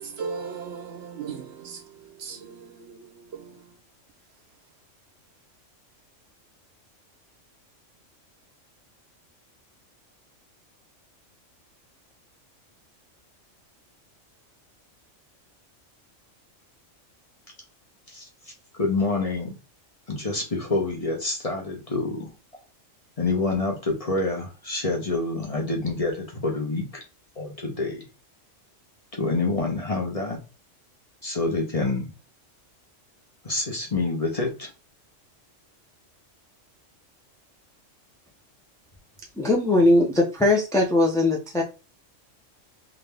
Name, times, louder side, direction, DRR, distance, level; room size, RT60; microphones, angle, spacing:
voice 1, 0.0-1.8 2.2-3.7, right 5 dB, 60° right, 0.9 m, -37 dB
voice 2, 18.8-19.6 20.1-22.3 23.2-27.0 27.4-28.1 29.1-30.4 31.2-32.1 33.4-34.7, left 3 dB, 30° left, 1.0 m, -27 dB
voice 3, 39.4-41.6, left 2 dB, 5° left, 0.4 m, -20 dB
3.8 x 2.7 x 3.3 m
omnidirectional pair, 1.3 m